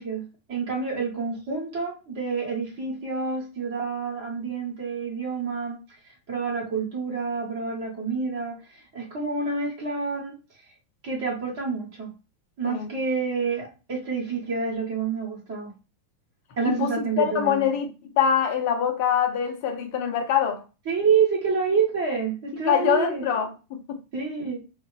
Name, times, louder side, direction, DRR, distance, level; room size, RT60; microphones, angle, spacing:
voice 1, 0.0-5.8 6.3-8.6 8.9-10.3 11.0-12.1 12.6-15.7 16.6-17.7 20.9-23.3 24.1-24.6, right 5 dB, 50° right, 1.7 m, -28 dB
voice 2, 16.6-20.6 22.6-24.0, left 8 dB, 45° left, 0.8 m, -24 dB
3.2 x 2.1 x 3.3 m
figure-of-eight pair, 90°, 0 cm